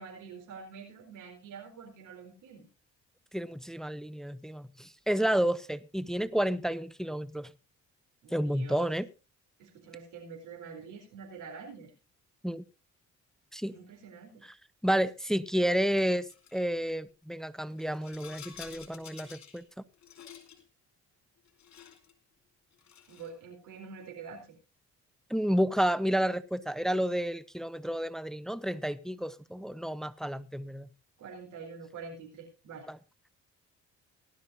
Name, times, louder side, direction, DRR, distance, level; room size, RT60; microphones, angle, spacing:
voice 1, 0.0-2.7 8.2-8.9 9.6-11.9 13.6-14.5 23.1-24.6 31.2-32.9, right 5 dB, 80° right, 1 dB, 4.4 m, -46 dB
voice 2, 3.3-7.5 8.3-9.1 12.4-12.6 13.5-13.7 14.4-14.5 14.8-19.6 25.3-30.9 32.9-33.0, equal, ahead, 16 dB, 0.7 m, -30 dB
Rattle, 16.3-16.6 17.7-19.6 19.9-20.6 21.4-22.1 22.7-23.4, left 9 dB, 65° left, 3.1 m, -50 dB
18.0 x 12.0 x 2.6 m, 0.31 s
cardioid pair, 90°, 30 cm